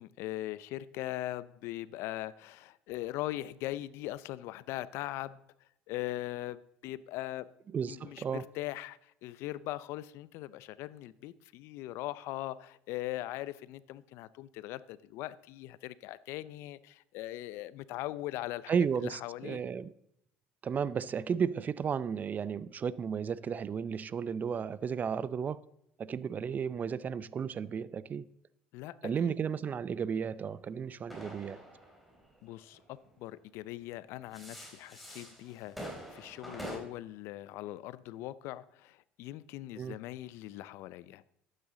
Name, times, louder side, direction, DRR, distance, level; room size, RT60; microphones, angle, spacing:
voice 1, 0.0-5.4 5.9-7.5 7.9-18.7 19.0-19.6 28.7-29.4 32.4-35.8 36.1-41.2, left 15 dB, 70° left, 0.5 m, -40 dB
voice 2, 7.7-8.5 18.7-19.9 20.6-25.6 26.0-28.2 29.0-31.6 39.8-40.0, right 7 dB, 40° right, 0.5 m, -33 dB
sound 1, 30.4-33.2 34.0-36.8, right 1 dB, ahead, 3.2 m, -46 dB
12.0 x 9.0 x 3.8 m
supercardioid pair, 75°, 5 cm